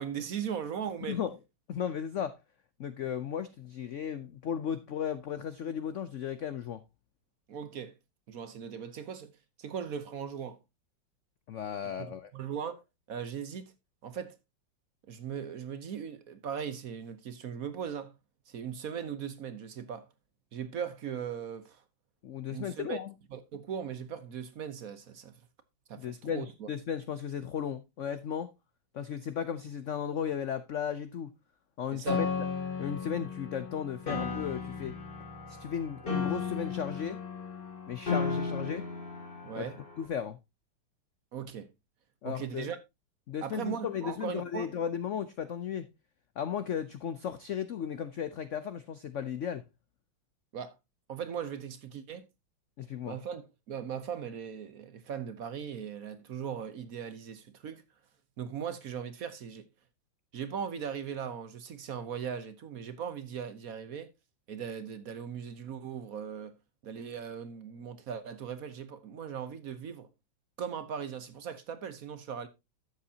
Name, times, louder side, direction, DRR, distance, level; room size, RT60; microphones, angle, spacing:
voice 1, 0.0-1.2 7.5-7.9 8.3-9.3 9.6-10.6 11.8-12.8 13.1-13.7 14.0-14.4 15.1-18.1 18.5-20.1 20.5-21.8 22.5-23.0 23.3-25.3 25.9-26.7 31.9-32.2 39.4-39.8 41.3-41.7 42.2-42.8 43.4-44.7 50.5-50.7 51.1-52.3 53.0-53.4 53.7-57.8 58.4-59.7 60.3-64.1 64.5-66.5 66.8-70.1 70.6-72.5, right 7 dB, 55° right, 1.1 m, -39 dB
voice 2, 1.7-2.4 2.8-6.8 11.5-12.3 22.2-23.1 26.0-28.5 28.9-31.3 31.8-32.3 32.8-35.0 35.5-37.2 37.9-38.9 39.5-39.7 40.0-40.4 42.2-42.7 43.3-45.9 46.4-49.6 52.8-53.2, left 8 dB, 70° left, 0.7 m, -35 dB
Piano, 32.1-40.1, left 5 dB, 30° left, 2.5 m, -35 dB
12.0 x 8.0 x 2.8 m
omnidirectional pair, 2.0 m